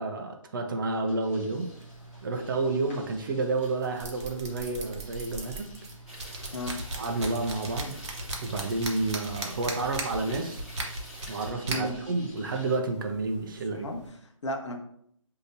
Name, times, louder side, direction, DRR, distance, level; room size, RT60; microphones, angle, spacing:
voice 1, 0.0-1.7 2.2-5.7 7.0-7.9 8.4-10.6 11.3-13.9, right 3 dB, 40° right, 4 dB, 0.5 m, -30 dB
sound 1, 0.8-12.8, left 1 dB, 20° left, 1.0 m, -53 dB
sound 2, 1.5-14.1, right 2 dB, 55° right, 0.9 m, -39 dB
sound 3, 6.1-11.5, equal, 5° right, 0.8 m, -47 dB
voice 2, 13.6-14.8, left 1 dB, 55° left, 3 dB, 0.8 m, -35 dB
6.3 x 2.8 x 2.6 m, 0.69 s
figure-of-eight pair, 145°, 17 cm